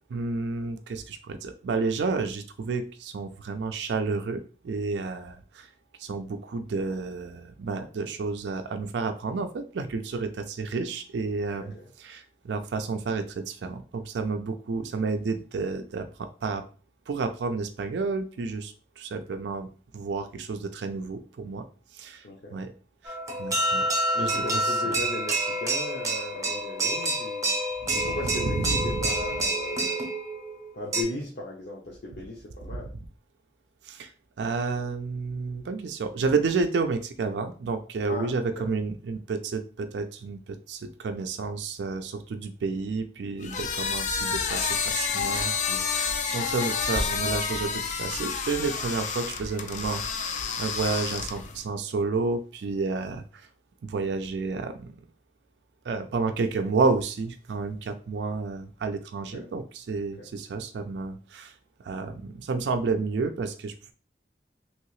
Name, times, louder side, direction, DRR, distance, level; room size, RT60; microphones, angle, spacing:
voice 1, 0.1-5.7 6.0-16.6 17.1-19.7 19.9-21.6 21.9-22.3 22.5-22.7 23.0-23.9 24.2-24.9 27.8-28.9 33.8-34.1 34.4-53.5 53.8-55.0 55.8-61.6 61.8-63.9, right 4 dB, 80° right, 7 dB, 0.4 m, -31 dB
sound 1, 23.0-31.0, right 1 dB, 20° right, 0.6 m, -28 dB
voice 2, 24.1-27.5 27.9-30.0 30.7-32.9 38.1-38.7 59.3-59.5 60.2-60.3, left 2 dB, 70° left, -4 dB, 0.7 m, -36 dB
sound 2, 43.4-51.6, left 5 dB, 45° left, 0.4 m, -29 dB
3.0 x 2.7 x 3.0 m, 0.38 s
head